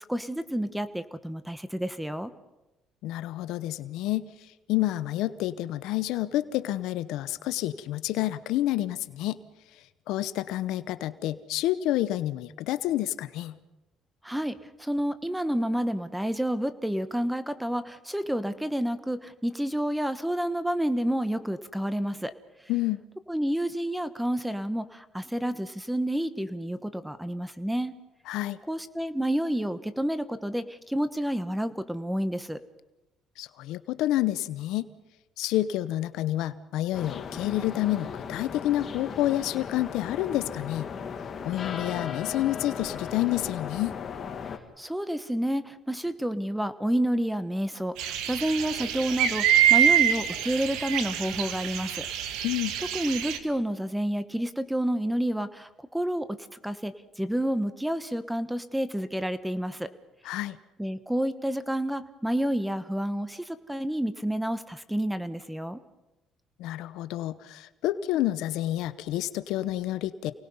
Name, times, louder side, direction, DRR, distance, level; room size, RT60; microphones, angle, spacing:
voice 1, 0.1-2.3 14.2-22.3 23.3-27.9 28.7-32.6 44.8-52.0 52.9-56.4 56.6-59.9 60.8-65.8, right 1 dB, 5° right, 12 dB, 1.2 m, -29 dB
voice 2, 3.0-4.3 4.7-9.4 10.1-13.5 22.7-23.0 28.3-28.6 33.4-34.9 35.4-40.9 41.4-44.0 52.4-52.8 60.2-60.6 66.6-70.3, left 14 dB, 80° left, 14 dB, 0.8 m, -29 dB
sound 1, 36.9-44.6, left 6 dB, 45° left, 2.2 m, -37 dB
sound 2, 48.0-53.4, right 10 dB, 85° right, 1.6 m, -25 dB
28.5 x 19.0 x 5.5 m, 0.99 s
cardioid pair, 95°, 0 cm